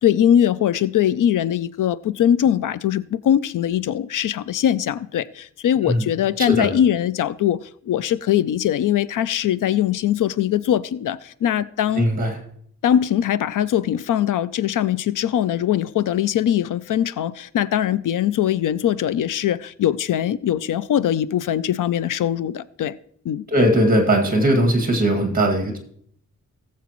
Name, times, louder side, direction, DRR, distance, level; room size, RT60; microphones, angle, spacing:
voice 1, 0.0-12.1 12.8-23.0 23.2-23.5, left 10 dB, 85° left, 0.5 m, -21 dB
voice 2, 11.9-12.4 23.5-25.8, right 1 dB, 30° right, 2.1 m, -19 dB
18.5 x 7.4 x 3.0 m
wide cardioid pair, 170°, 31 cm